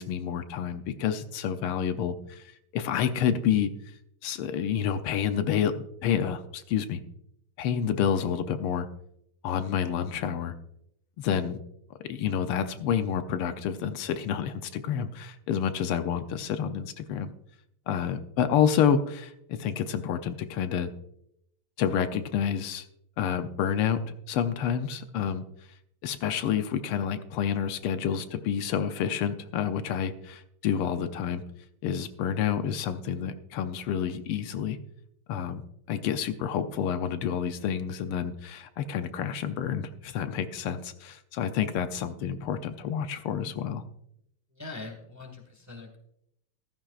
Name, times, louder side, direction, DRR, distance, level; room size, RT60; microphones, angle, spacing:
voice 1, 0.0-2.4 2.7-3.7 4.2-5.7 6.0-7.0 7.6-8.9 9.4-10.5 11.2-11.6 12.1-17.3 17.9-20.9 21.8-22.9 23.2-24.0 24.3-25.4 26.0-31.4 31.8-34.8 35.3-35.6 35.9-43.8, left 8 dB, 80° left, 9 dB, 1.7 m, -29 dB
voice 2, 44.5-46.0, left 3 dB, 10° right, 2 dB, 1.3 m, -42 dB
15.0 x 13.0 x 2.4 m, 0.75 s
omnidirectional pair, 2.4 m